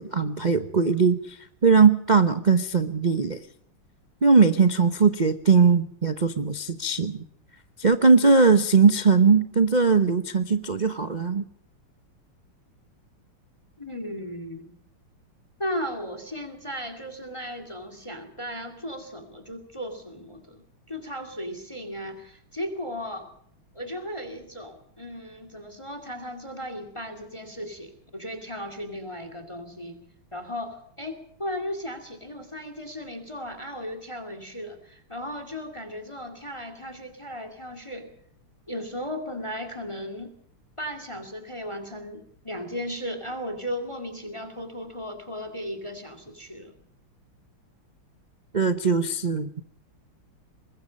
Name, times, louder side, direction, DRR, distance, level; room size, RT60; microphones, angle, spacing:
voice 1, 0.0-3.4 4.2-7.2 7.8-11.5 48.5-49.6, right 5 dB, 50° right, 9 dB, 0.5 m, -20 dB
voice 2, 13.8-14.7 15.6-23.3 23.7-30.0 30.3-38.1 38.7-40.3 40.8-46.7, equal, 15° left, 10 dB, 2.4 m, -36 dB
24.5 x 21.0 x 5.3 m, 0.68 s
omnidirectional pair, 2.3 m